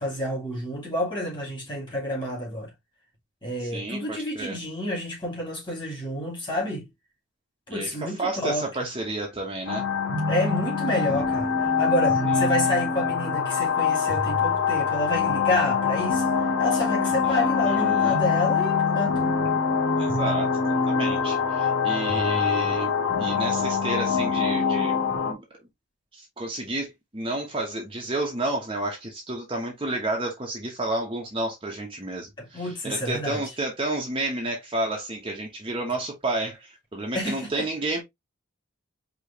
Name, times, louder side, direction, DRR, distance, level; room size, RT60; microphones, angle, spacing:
voice 1, 0.0-2.7 3.4-6.9 7.7-8.7 10.3-16.3 16.6-19.3 32.4-33.4 37.1-37.7, left 1 dB, 20° left, 2.4 m, -29 dB
voice 2, 3.7-4.6 7.7-9.8 17.6-18.2 20.0-24.9 25.3-25.4 26.1-38.0, right 2 dB, 25° right, 1.0 m, -31 dB
sound 1, 9.7-25.3, left 5 dB, 70° left, 2.1 m, -24 dB
4.9 x 3.1 x 2.8 m
head